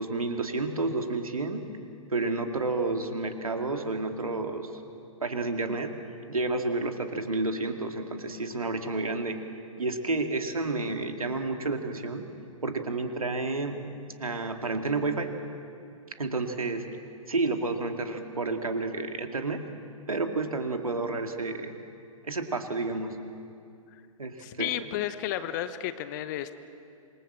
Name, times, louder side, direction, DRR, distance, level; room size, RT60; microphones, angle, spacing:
voice 1, 0.0-1.6 2.1-4.7 5.2-5.9 6.3-9.4 9.8-12.2 12.6-13.8 14.2-15.3 16.2-16.9 17.3-19.6 20.1-21.8 22.2-23.2 24.2-24.8, right 3 dB, 75° right, 5 dB, 2.4 m, -30 dB
voice 2, 24.4-26.5, left 12 dB, 30° left, 12 dB, 1.1 m, -32 dB
27.0 x 21.5 x 7.5 m, 2.5 s
figure-of-eight pair, 120°, 18 cm